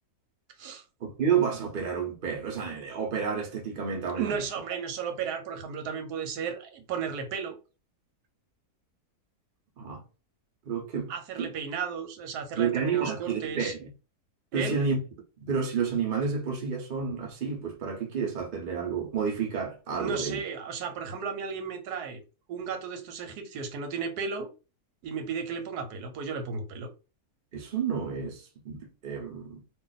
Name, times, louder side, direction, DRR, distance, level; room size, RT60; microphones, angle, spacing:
voice 1, 1.0-4.3 9.8-10.0 10.7-11.5 12.6-13.9 14.5-15.0 15.4-20.4 27.5-29.6, right 6 dB, 45° right, 0.8 m, -30 dB
voice 2, 4.2-7.6 11.1-13.7 14.5-14.8 19.9-22.2 22.5-24.5 25.0-26.9, right 6 dB, 85° right, 1.2 m, -34 dB
2.5 x 2.5 x 3.9 m
omnidirectional pair, 1.7 m